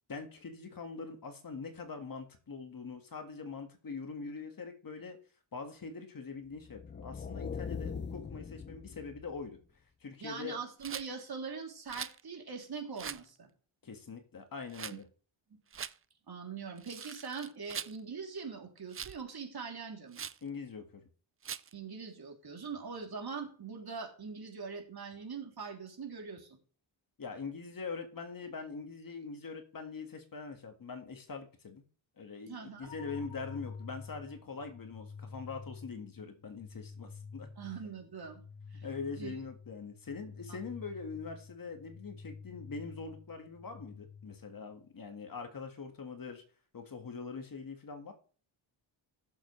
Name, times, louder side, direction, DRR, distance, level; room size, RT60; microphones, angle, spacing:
voice 1, 0.1-5.2 5.5-9.6 10.0-10.6 13.8-15.1 20.4-21.0 27.2-31.8 32.2-37.5 38.8-46.4 46.7-48.1, left 4 dB, 45° left, 5 dB, 1.8 m, -43 dB
sound 1, 6.6-9.6, left 6 dB, 25° left, 0.5 m, -41 dB
voice 2, 10.2-13.5 15.5-15.6 16.3-20.2 21.7-26.5 32.5-32.9 37.6-38.4 38.7-38.9 39.1-39.3, right 5 dB, 50° right, 1 dB, 3.2 m, -42 dB
Rattle, 10.8-11.1 11.9-12.2 13.0-13.2 14.7-15.0 15.7-15.9 16.8-18.0 18.9-19.2 20.1-20.4 21.4-21.7, right 7 dB, 30° right, 0.4 m, -42 dB
sound 2, 32.8-44.8, left 4 dB, 90° left, 3.0 m, -49 dB
16.5 x 7.1 x 3.2 m, 0.42 s
wide cardioid pair, 120°, 48 cm